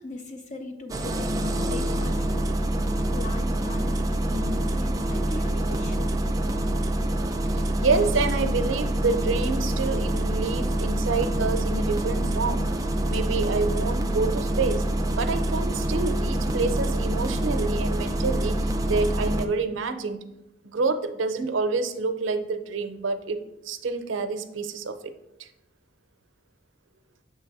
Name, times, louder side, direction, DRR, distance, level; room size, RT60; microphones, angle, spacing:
voice 1, 0.0-6.3, left 3 dB, 40° left, 4 dB, 0.5 m, -40 dB
Engine starting, 0.9-19.5, right 1 dB, 20° right, 0.4 m, -26 dB
voice 2, 7.5-12.8 13.1-20.3 20.6-23.4 23.6-25.1 25.4-25.5, right 4 dB, 80° right, 9 dB, 0.5 m, -28 dB
7.0 x 3.3 x 4.6 m, 0.89 s
head